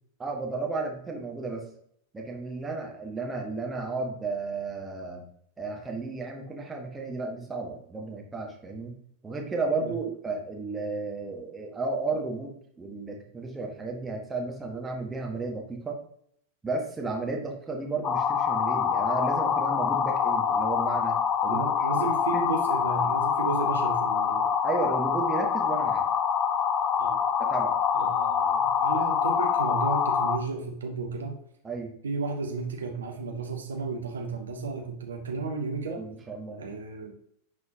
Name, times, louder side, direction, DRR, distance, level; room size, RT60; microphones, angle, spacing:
voice 1, 0.2-1.7 2.1-5.2 5.6-9.0 9.2-16.0 16.6-21.6 22.3-22.5 24.6-26.1 27.4-27.8 31.6-31.9 35.9-36.6, right 3 dB, 15° right, 0 dB, 1.5 m, -33 dB
sound 1, 18.0-30.4, left 7 dB, 30° left, 0.6 m, -25 dB
voice 2, 21.5-24.5 27.0-27.2 27.9-31.4 32.0-36.0 36.6-37.1, right 4 dB, 70° right, 2 dB, 1.1 m, -33 dB
11.0 x 4.1 x 2.9 m, 0.67 s
figure-of-eight pair, 90°, 0 cm